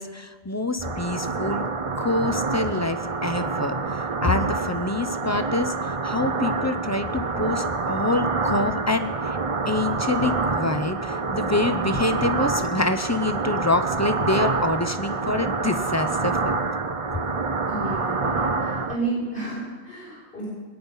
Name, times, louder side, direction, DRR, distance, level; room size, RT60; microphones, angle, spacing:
voice 1, 0.0-1.7 2.0-9.4 9.7-16.6, left 2 dB, 20° left, 9 dB, 0.6 m, -26 dB
sound 1, 0.8-19.0, right 4 dB, 35° right, 0.7 m, -27 dB
voice 2, 17.7-20.5, right 2 dB, 60° left, -9 dB, 6.7 m, -31 dB
22.0 x 9.9 x 5.6 m, 1.4 s
omnidirectional pair, 1.1 m